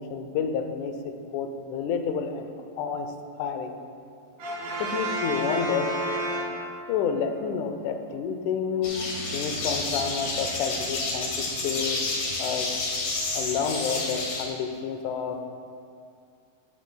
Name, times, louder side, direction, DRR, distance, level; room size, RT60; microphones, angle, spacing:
voice 1, 0.0-2.5 2.8-3.1 3.4-3.7 4.8-5.9 6.9-12.0 12.4-12.7 13.3-15.5, left 6 dB, 85° left, 6 dB, 1.7 m, -29 dB
Brass instrument, 4.4-7.0, right 1 dB, 70° right, 3.3 m, -30 dB
sound 1, 8.8-14.4, left 3 dB, 60° left, 2.7 m, -30 dB
13.5 x 9.1 x 2.2 m, 2.3 s
omnidirectional pair, 4.3 m